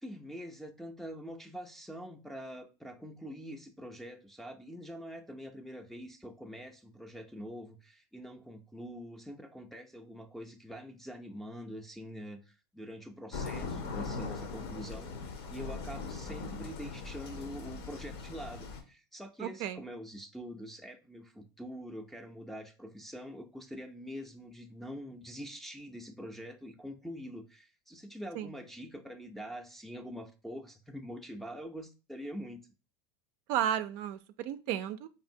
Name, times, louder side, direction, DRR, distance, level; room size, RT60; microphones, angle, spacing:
voice 1, 0.0-12.4 12.7-15.1 15.5-32.6, equal, ahead, 0.5 m, -45 dB
sound 1, 13.3-18.8, left 4 dB, 70° left, 0.8 m, -40 dB
voice 2, 19.4-19.8 28.3-28.5 33.5-35.1, right 10 dB, 55° right, 0.4 m, -33 dB
5.0 x 2.7 x 2.7 m
hypercardioid pair, 105°, 13 cm